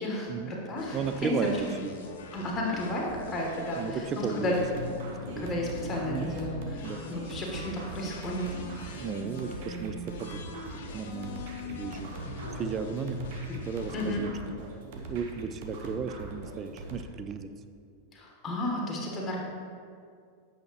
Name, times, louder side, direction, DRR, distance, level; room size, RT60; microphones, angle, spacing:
voice 1, 0.0-1.7 2.3-4.6 5.4-8.5 8.8-9.0 13.9-14.2 18.1-19.4, left 1 dB, 20° left, -2 dB, 1.4 m, -33 dB
sound 1, 0.8-14.3, left 2 dB, 55° left, 0.6 m, -42 dB
voice 2, 0.9-1.9 3.8-4.8 5.4-5.6 6.1-6.3 6.8-7.0 9.0-10.4 10.9-11.4 11.7-12.1 12.5-13.3 13.6-17.5, right 6 dB, 30° right, 10 dB, 0.4 m, -34 dB
sound 2, 4.5-17.0, right 2 dB, 50° right, 0.9 m, -42 dB
sound 3, 10.0-10.1 10.5-14.3 14.7-15.1, equal, 75° right, 0.9 m, -47 dB
8.6 x 5.7 x 3.1 m, 2.2 s
figure-of-eight pair, 90°, 0 cm